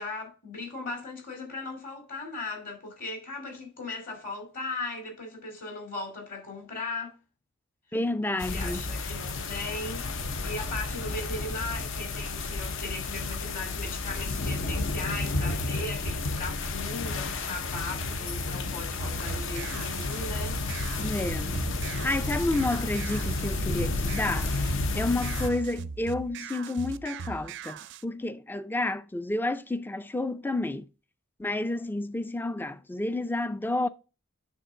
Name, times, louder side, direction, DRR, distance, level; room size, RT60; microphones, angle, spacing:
voice 1, 0.0-7.2 8.3-20.6, left 3 dB, 40° left, 2.5 m, -38 dB
voice 2, 7.9-8.8 21.0-21.6 22.0-30.9 31.4-33.9, left 2 dB, 10° left, 0.3 m, -30 dB
sound 1, 8.4-25.5, left 3 dB, 60° left, 0.7 m, -31 dB
sound 2, 19.0-28.0, right 5 dB, 55° right, 0.4 m, -40 dB
9.3 x 3.7 x 5.1 m
head